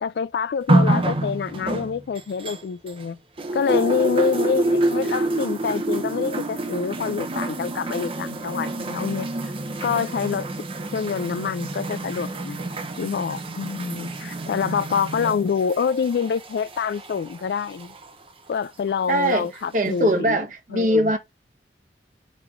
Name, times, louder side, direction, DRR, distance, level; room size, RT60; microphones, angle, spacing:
voice 1, 0.0-3.2 3.5-9.3 9.8-10.5 10.9-12.6 13.0-17.9 18.5-20.4 20.7-21.1, left 6 dB, 65° left, 0.3 m, -26 dB
Bucket Tap water, 0.7-3.0 3.4-18.1 19.0-19.1, right 2 dB, 30° right, 0.6 m, -27 dB
voice 2, 19.1-19.5 19.7-21.2, equal, 45° right, 1.0 m, -21 dB
5.0 x 3.0 x 3.6 m
head